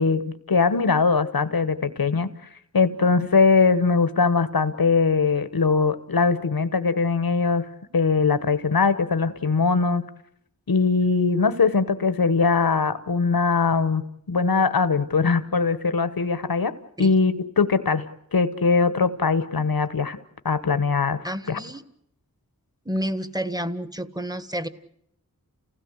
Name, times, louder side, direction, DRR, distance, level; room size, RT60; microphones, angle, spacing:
voice 1, 0.0-2.3 2.7-7.7 7.9-10.1 10.7-16.7 17.0-18.1 18.3-20.2 20.4-21.2 21.5-21.6, left 4 dB, 75° left, 12 dB, 1.1 m, -21 dB
voice 2, 21.2-21.8 22.8-24.7, equal, 10° right, 13 dB, 1.5 m, -30 dB
29.0 x 16.5 x 8.0 m, 0.73 s
wide cardioid pair, 40°, 36 cm